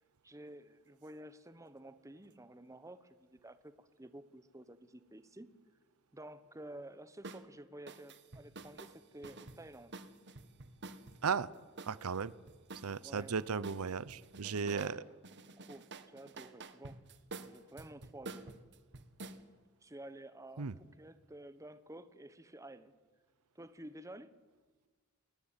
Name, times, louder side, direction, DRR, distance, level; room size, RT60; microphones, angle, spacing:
voice 1, 0.2-5.5 6.1-10.0 13.0-13.3 14.6-15.0 15.5-17.0 17.4-18.5 19.8-20.7 21.0-22.9 23.5-24.3, right 1 dB, 15° right, 13 dB, 1.1 m, -51 dB
sound 1, 7.2-7.4 7.9-11.2 11.8-13.3 13.6-15.0 15.2-19.4, right 3 dB, 55° right, 1.6 m, -49 dB
voice 2, 11.9-12.3 12.8-15.0 20.6-20.8, right 5 dB, 85° right, 19 dB, 0.7 m, -35 dB
20.5 x 20.0 x 9.0 m, 1.4 s
head